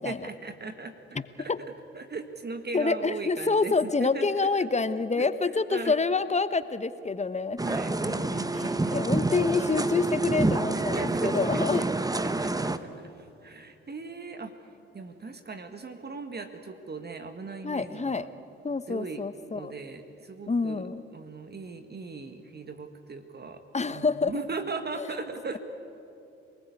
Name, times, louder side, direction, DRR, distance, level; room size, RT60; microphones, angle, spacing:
voice 1, 0.0-1.5 1.9-4.3 4.5-4.7 5.2-5.9 7.6-9.0 10.7-11.9 12.2-14.5 14.9-18.3 18.9-19.2 19.5-20.9 21.1-25.6, right 4 dB, 35° right, 7 dB, 1.8 m, -38 dB
voice 2, 1.1-1.6 2.7-7.6 8.5-8.6 8.9-11.9 17.6-18.3 18.6-19.7 20.5-21.0 23.7-24.3 25.0-25.1, left 4 dB, 25° left, 13 dB, 1.1 m, -27 dB
sound 1, 7.6-12.8, right 2 dB, 10° right, 1.1 m, -28 dB
27.0 x 20.0 x 8.5 m, 2.8 s
hypercardioid pair, 45°, 29 cm